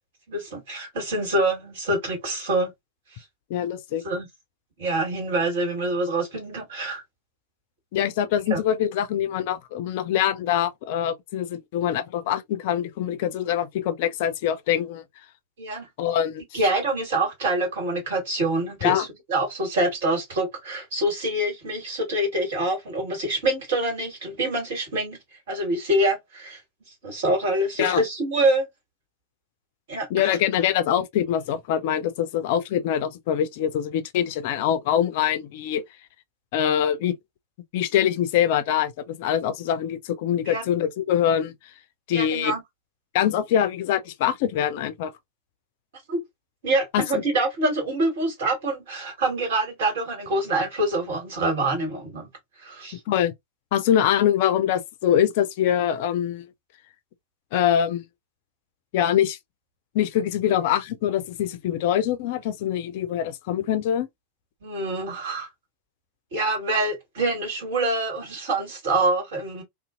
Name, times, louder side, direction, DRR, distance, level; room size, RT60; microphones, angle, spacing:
voice 1, 0.3-2.7 3.1-3.2 4.0-4.3 4.8-7.0 8.5-8.6 15.6-15.9 16.5-25.2 25.5-26.6 27.0-28.7 29.9-30.4 40.5-40.7 42.1-42.6 46.1-46.2 46.6-52.3 52.6-53.0 64.6-65.5 66.3-69.6, right 2 dB, 55° right, 1.7 m, -25 dB
voice 2, 3.5-4.0 7.9-15.0 16.0-16.4 18.8-19.0 27.8-28.0 30.1-35.8 36.5-37.1 37.7-41.5 42.1-42.5 43.1-45.1 46.9-47.2 53.1-53.3 53.7-56.4 57.5-58.0 58.9-59.4 59.9-64.1, left 10 dB, 50° left, 0.4 m, -24 dB
2.5 x 2.4 x 2.4 m
figure-of-eight pair, 90°, 0 cm